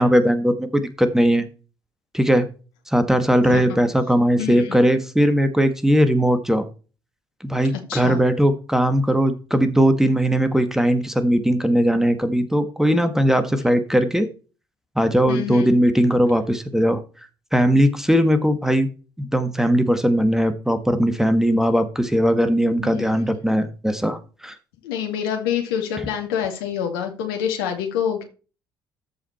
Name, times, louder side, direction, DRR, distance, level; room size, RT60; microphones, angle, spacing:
voice 1, 0.0-1.5 2.1-2.5 2.9-6.6 7.4-14.3 14.9-17.0 17.5-18.9 19.2-24.5, equal, 5° right, 10 dB, 1.6 m, -19 dB
voice 2, 4.4-4.8 7.9-8.2 15.3-15.7 22.8-23.1 24.8-28.2, left 8 dB, 75° left, 3 dB, 2.1 m, -26 dB
13.5 x 5.0 x 4.3 m, 0.35 s
figure-of-eight pair, 50°, 12 cm